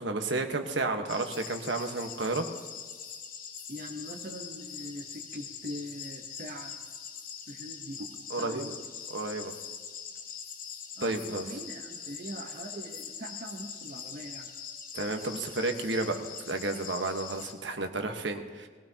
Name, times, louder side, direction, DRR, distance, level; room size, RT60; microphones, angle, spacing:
voice 1, 0.0-2.5 8.3-8.7 9.1-9.5 11.0-11.4 14.9-18.7, right 2 dB, 75° right, 4 dB, 1.3 m, -32 dB
sound 1, 1.1-17.5, left 7 dB, 50° left, 1.2 m, -43 dB
voice 2, 3.7-6.9 7.5-9.1 11.0-14.5, equal, 45° right, 0 dB, 1.0 m, -42 dB
21.0 x 17.0 x 2.9 m, 1.5 s
head